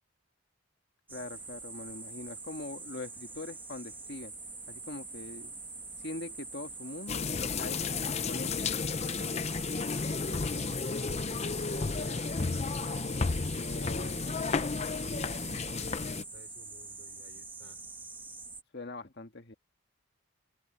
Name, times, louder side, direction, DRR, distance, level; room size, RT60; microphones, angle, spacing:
voice 1, 1.1-4.3 4.7-5.5 6.0-7.8 8.3-8.7 13.5-14.3 18.7-19.5, left 2 dB, 50° left, 1.6 m, -42 dB
sound 1, 1.1-18.6, right 3 dB, 10° right, 1.1 m, -45 dB
sound 2, 7.1-16.2, left 4 dB, 30° left, 0.5 m, -32 dB
voice 2, 10.1-14.7 15.1-17.8, right 1 dB, 60° right, 5.4 m, -55 dB
open air
head